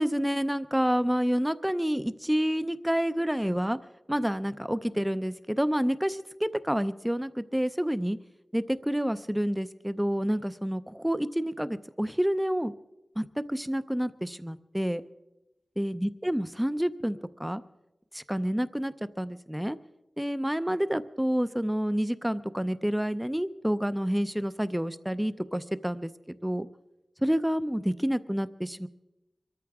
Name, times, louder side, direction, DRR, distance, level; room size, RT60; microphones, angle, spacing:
voice 1, 0.0-3.8 4.1-8.2 8.5-12.7 13.2-15.0 15.8-17.6 18.1-19.8 20.2-26.7 27.2-28.9, equal, 5° right, 13 dB, 0.5 m, -28 dB
24.5 x 13.5 x 3.5 m, 0.99 s
wide cardioid pair, 90°, 0 cm